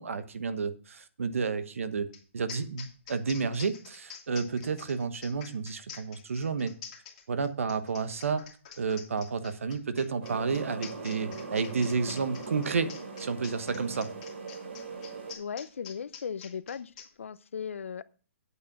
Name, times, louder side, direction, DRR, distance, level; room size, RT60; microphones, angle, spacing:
voice 1, 0.0-2.1 2.3-6.7 7.3-8.4 8.8-12.9 13.2-14.1, right 5 dB, 80° right, 1.1 m, -31 dB
sound 1, 2.1-2.2 2.5-17.1, left 7 dB, 30° left, 2.0 m, -47 dB
sound 2, 10.2-15.3, right 4 dB, 55° right, 3.6 m, -40 dB
voice 2, 15.4-18.0, left 7 dB, 70° left, 0.6 m, -37 dB
8.4 x 7.1 x 5.9 m
hypercardioid pair, 170°, 7 cm